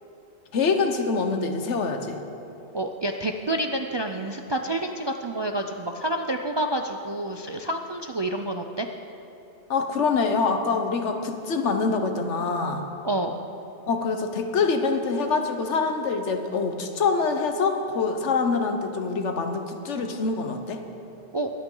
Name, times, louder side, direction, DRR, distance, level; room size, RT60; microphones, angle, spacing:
voice 1, 0.5-2.2 9.7-12.9 13.9-20.8, left 4 dB, 85° left, 6 dB, 1.3 m, -25 dB
voice 2, 2.7-8.9 13.0-13.3 21.3-21.5, right 1 dB, 40° right, 4 dB, 0.3 m, -28 dB
22.5 x 9.1 x 3.8 m, 2.9 s
omnidirectional pair, 1.2 m